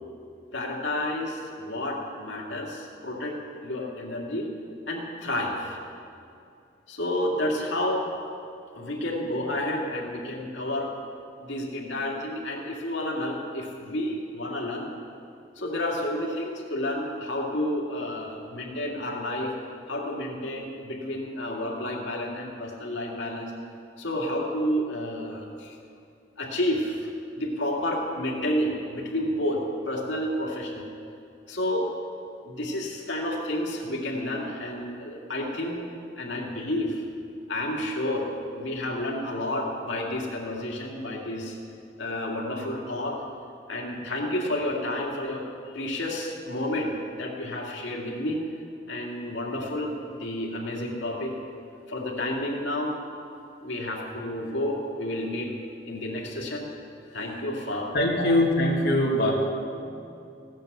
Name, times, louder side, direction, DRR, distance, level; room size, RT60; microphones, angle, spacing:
voice 1, 0.5-4.5 4.9-5.8 6.9-8.0 8.7-10.9 11.4-14.9 15.6-19.5 19.9-23.5 24.0-25.8 26.4-27.1 27.3-30.9 31.5-31.9 32.5-35.8 36.2-37.0 37.5-41.6 42.0-43.2 43.7-48.4 48.9-51.3 51.9-52.9 53.6-55.5 55.8-56.7 57.1-57.9 58.2-58.3, left 1 dB, 85° left, -2 dB, 2.2 m, -30 dB
voice 2, 57.9-59.3, left 1 dB, 60° left, -4 dB, 1.9 m, -22 dB
16.0 x 9.1 x 6.7 m, 2.6 s
head